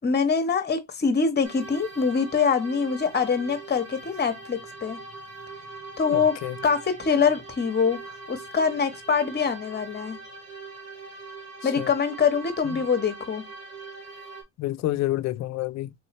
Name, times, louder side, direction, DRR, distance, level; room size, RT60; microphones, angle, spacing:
voice 1, 0.0-5.0 6.0-8.0 8.3-10.2 11.6-13.4, left 5 dB, 30° left, 1.0 m, -24 dB
sound 1, 1.4-14.4, right 3 dB, 70° right, 1.5 m, -42 dB
voice 2, 6.1-6.6 11.6-11.9 12.6-12.8 14.6-15.9, left 15 dB, 50° left, 0.4 m, -29 dB
3.3 x 3.0 x 3.0 m
supercardioid pair, 80°, 36 cm